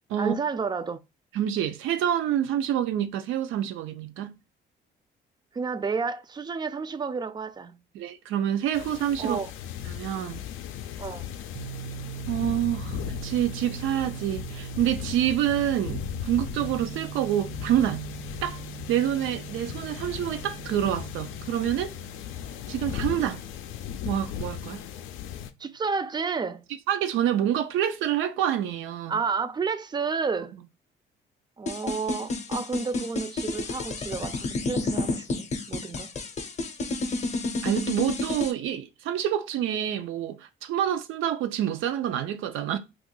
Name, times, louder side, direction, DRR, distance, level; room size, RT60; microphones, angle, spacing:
voice 1, 0.2-1.0 5.5-7.8 9.2-9.5 11.0-11.3 25.6-26.6 29.1-30.6 31.6-36.1, right 5 dB, 20° right, 0.3 m, -31 dB
voice 2, 1.3-4.3 7.9-9.4 9.9-10.4 12.3-18.1 18.4-21.9 22.7-23.4 24.0-24.8 26.9-29.2 37.6-42.8, right 11 dB, 90° right, 0.5 m, -27 dB
sound 1, 8.7-25.5, left 10 dB, 90° left, 0.4 m, -37 dB
sound 2, 11.5-25.2, right 11 dB, 55° right, 0.7 m, -42 dB
sound 3, 31.7-38.5, left 2 dB, 35° left, 0.6 m, -30 dB
2.7 x 2.4 x 3.7 m
cardioid pair, 90°, 20 cm